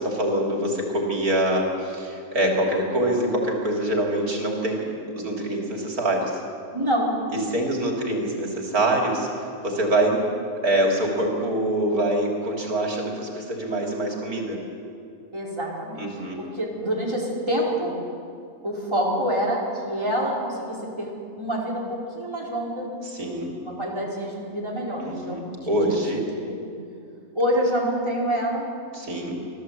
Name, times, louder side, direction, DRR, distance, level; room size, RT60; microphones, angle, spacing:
voice 1, 0.0-4.9 5.2-6.4 7.5-10.3 10.6-14.6 16.0-16.4 23.0-23.5 25.0-26.2 28.9-29.3, right 1 dB, 85° right, -1 dB, 3.6 m, -25 dB
voice 2, 6.7-7.1 15.3-16.1 16.4-18.0 18.6-23.0 23.6-26.0 26.6-26.7 27.3-28.7, equal, 20° right, -4 dB, 4.6 m, -27 dB
25.5 x 16.5 x 8.3 m, 2.4 s
omnidirectional pair, 1.5 m